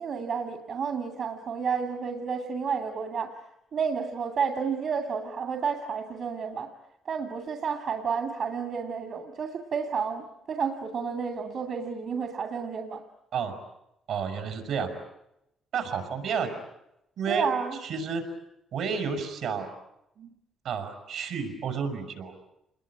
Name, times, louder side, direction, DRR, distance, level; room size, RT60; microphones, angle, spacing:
voice 1, 0.0-3.3 3.7-6.7 7.1-13.0 17.3-17.8 20.2-20.3, right 6 dB, 60° right, 5 dB, 2.5 m, -31 dB
voice 2, 14.1-14.9 15.7-16.6 17.2-17.5 17.8-18.2 18.7-19.7 20.6-22.3, right 6 dB, 80° right, 6 dB, 6.2 m, -31 dB
28.0 x 21.0 x 10.0 m, 0.84 s
cardioid pair, 90°, 0 cm